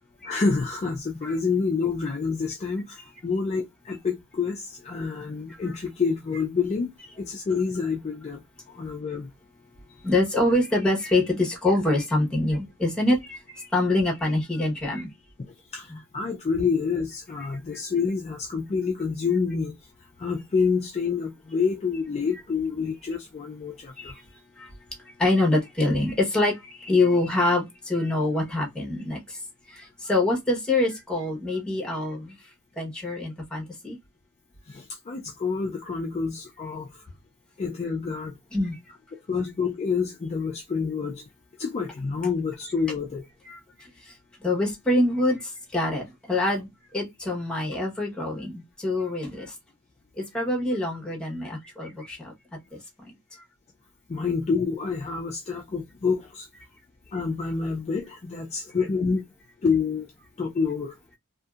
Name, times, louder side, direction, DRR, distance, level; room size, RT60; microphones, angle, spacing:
voice 1, 0.2-6.9 7.2-8.4 8.7-9.3 15.7-19.7 20.2-24.2 34.7-37.1 37.6-38.3 39.1-41.2 41.6-43.3 54.1-56.5 57.1-59.3 59.6-60.1 60.4-60.9, left 5 dB, 30° left, 0.4 m, -28 dB
voice 2, 10.0-15.1 15.9-16.0 24.0-24.1 24.6-24.7 25.2-29.4 29.7-32.3 32.8-34.0 38.5-38.8 43.5-43.6 44.4-45.4 45.7-46.7 46.9-49.5 50.2-52.3, left 2 dB, 5° left, 1.0 m, -25 dB
2.8 x 2.6 x 2.3 m
head